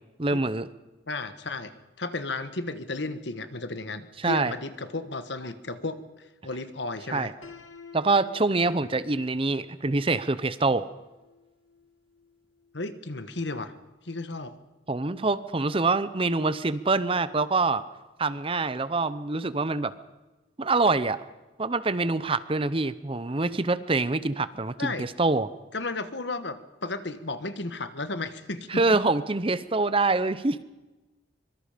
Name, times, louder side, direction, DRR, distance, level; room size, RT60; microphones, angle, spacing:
voice 1, 0.2-0.7 4.2-4.5 7.1-7.3 7.9-10.9 14.9-17.8 18.2-19.9 20.6-21.2 21.6-25.5 28.7-30.6, right 3 dB, 30° right, 15 dB, 0.7 m, -25 dB
voice 2, 1.1-7.3 12.7-13.7 14.0-14.6 24.8-25.1 25.7-29.0, left 3 dB, 65° left, 11 dB, 1.5 m, -34 dB
Piano, 7.4-13.3, left 5 dB, 90° left, 2.3 m, -52 dB
24.5 x 23.5 x 5.1 m, 1.1 s
head